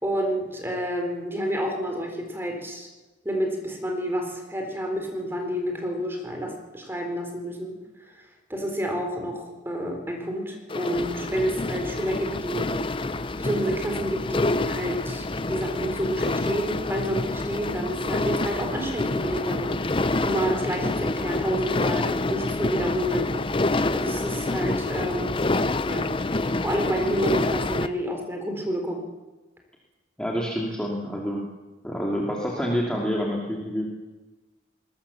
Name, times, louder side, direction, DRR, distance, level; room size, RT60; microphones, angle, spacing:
voice 1, 0.0-2.9 3.2-7.7 8.5-12.7 13.4-23.3 23.9-25.3 25.8-26.1 26.6-29.0, equal, 10° right, 3 dB, 4.1 m, -29 dB
sound 1, 10.7-27.9, left 2 dB, 25° left, 0.6 m, -27 dB
voice 2, 30.2-31.4 31.8-33.9, equal, 5° left, -3 dB, 2.5 m, -27 dB
21.5 x 20.0 x 7.1 m, 1.1 s
head